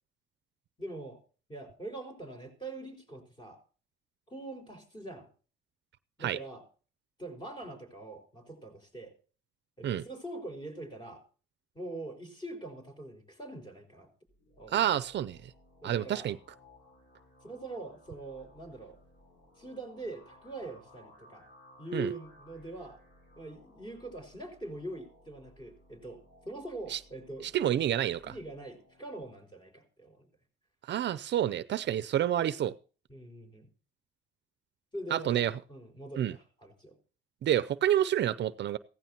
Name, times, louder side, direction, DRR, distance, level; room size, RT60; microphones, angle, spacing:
voice 1, 0.8-1.2 1.5-3.6 4.3-5.3 6.2-6.7 7.2-9.1 9.8-11.2 11.8-14.1 14.6-14.8 15.8-16.3 17.4-19.0 19.6-21.5 21.8-23.0 23.4-27.5 28.2-30.3 33.1-33.7 34.9-37.0, right 2 dB, 25° left, 3 dB, 5.2 m, -43 dB
sound 1, 14.3-29.2, left 1 dB, 55° left, 6.2 m, -60 dB
voice 2, 14.7-15.4 15.8-16.4 21.9-22.1 26.9-27.0 27.4-28.2 30.9-32.7 35.1-35.5 36.2-36.3 37.4-38.8, right 11 dB, 60° right, 15 dB, 0.6 m, -28 dB
16.0 x 15.0 x 2.9 m, 0.38 s
cardioid pair, 90°, 20 cm